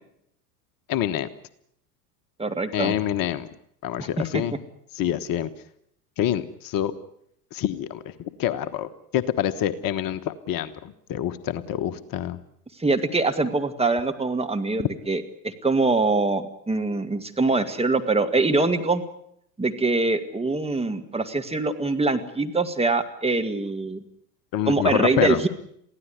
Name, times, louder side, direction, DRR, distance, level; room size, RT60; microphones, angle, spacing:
voice 1, 0.9-1.3 2.7-3.5 3.8-4.5 4.9-5.5 6.2-6.9 7.5-12.4 24.5-25.4, left 11 dB, 45° left, 12 dB, 1.3 m, -26 dB
voice 2, 2.4-2.9 4.0-4.1 4.3-4.4 12.8-19.0 19.6-24.0 24.7-25.5, right 3 dB, 10° right, 7 dB, 2.2 m, -24 dB
23.0 x 16.0 x 9.9 m, 0.71 s
hypercardioid pair, 80°, 49 cm